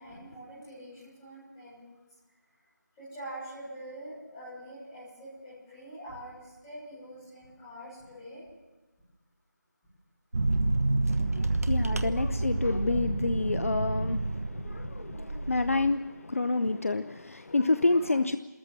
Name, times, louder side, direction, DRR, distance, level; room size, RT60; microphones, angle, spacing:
voice 1, 0.0-1.8 3.0-8.4 13.0-13.1 17.3-17.4 17.8-18.1, right 1 dB, 10° left, -11 dB, 6.8 m, -45 dB
sound 1, 10.3-15.9, right 2 dB, 55° right, 1.0 m, -29 dB
voice 2, 11.3-18.4, left 3 dB, 50° left, 11 dB, 0.6 m, -28 dB
26.5 x 14.0 x 7.4 m, 1.1 s
figure-of-eight pair, 170°, 10 cm